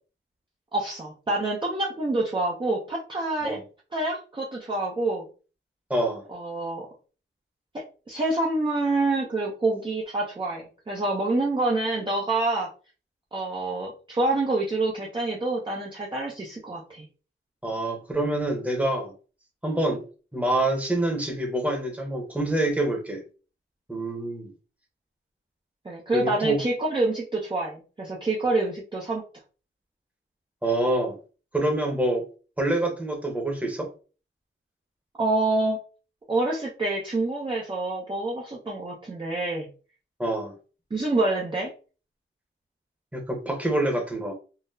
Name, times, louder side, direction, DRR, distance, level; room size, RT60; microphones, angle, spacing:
voice 1, 0.7-3.6 3.9-5.3 6.3-6.9 7.7-12.7 13.3-17.1 25.8-29.2 35.2-35.8 36.3-39.7 40.9-41.7, right 2 dB, 25° right, -3 dB, 0.6 m, -27 dB
voice 2, 5.9-6.2 17.6-19.1 19.6-20.0 20.3-23.2 23.9-24.5 26.1-26.6 30.6-31.2 31.5-32.2 32.6-33.9 40.2-40.5 43.1-44.3, right 1 dB, 5° right, 2 dB, 0.9 m, -26 dB
3.8 x 2.0 x 2.6 m, 0.36 s
wide cardioid pair, 105°, 21 cm